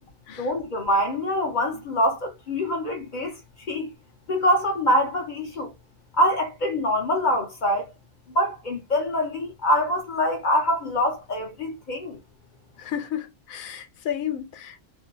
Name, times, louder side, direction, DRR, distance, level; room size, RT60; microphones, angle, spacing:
voice 1, 0.4-3.4 3.7-3.9 4.3-5.7 6.1-7.9 8.3-12.2, equal, 50° left, 0.6 m, -24 dB
voice 2, 12.8-14.8, left 10 dB, 90° left, 1.0 m, -32 dB
2.7 x 2.2 x 2.4 m
omnidirectional pair, 1.4 m